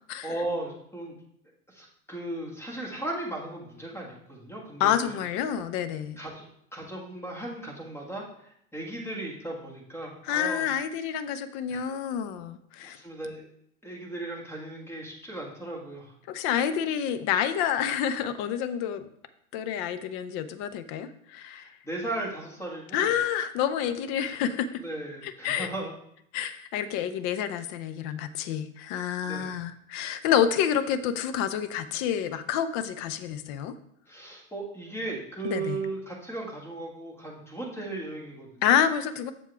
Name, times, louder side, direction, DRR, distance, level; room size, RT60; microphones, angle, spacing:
voice 1, 0.2-1.2 1.7-5.2 6.2-6.4 6.7-8.2 8.7-10.7 11.7-11.8 12.8-13.4 13.8-16.1 21.5-23.1 24.8-25.9 29.3-29.6 34.1-38.7, right 2 dB, 5° left, -1 dB, 1.7 m, -36 dB
voice 2, 4.8-6.2 10.2-13.0 16.3-19.1 19.5-21.7 22.9-24.8 25.2-25.7 26.3-33.8 35.4-35.9 38.6-39.3, left 9 dB, 35° left, 12 dB, 0.6 m, -28 dB
7.3 x 7.0 x 3.4 m, 0.73 s
hypercardioid pair, 100°, 43 cm